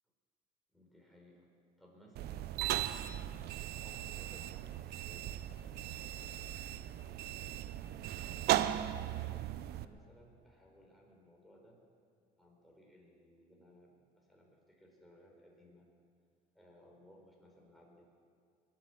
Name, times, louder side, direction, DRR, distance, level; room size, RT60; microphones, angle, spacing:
voice 1, 0.7-1.5 1.8-11.8 12.4-15.9 16.5-18.2, equal, ahead, -2 dB, 4.3 m, -62 dB
sound 1, 2.2-9.9, right 13 dB, 70° right, 0.6 m, -37 dB
21.0 x 8.7 x 7.2 m, 2.2 s
cardioid pair, 110°, 17 cm